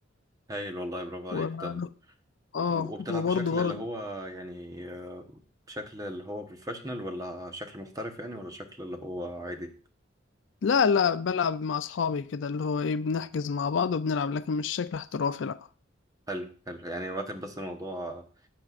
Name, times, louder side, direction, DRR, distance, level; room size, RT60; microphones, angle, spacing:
voice 1, 0.5-1.8 2.7-5.4 5.7-9.7 16.3-18.2, equal, 20° right, 1.1 m, -37 dB
voice 2, 1.3-1.9 2.5-3.8 10.6-15.6, left 6 dB, 65° left, 0.4 m, -28 dB
14.0 x 8.8 x 2.5 m
head